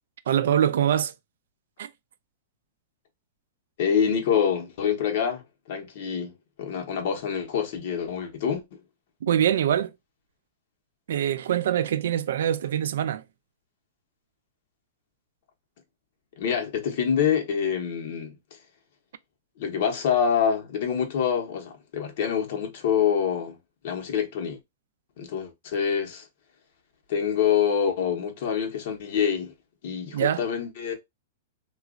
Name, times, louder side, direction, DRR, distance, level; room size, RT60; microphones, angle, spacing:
voice 1, 0.3-1.1 1.8-1.9 9.2-9.9 11.1-13.2 30.1-30.4, right 10 dB, 75° right, 0.4 m, -24 dB
voice 2, 3.8-5.4 5.7-6.3 6.6-8.6 16.4-18.6 19.6-23.6 23.8-24.6 25.2-26.3 27.1-29.5 29.8-30.9, left 7 dB, 60° left, 1.0 m, -26 dB
3.0 x 2.4 x 2.4 m
hypercardioid pair, 140°, 0 cm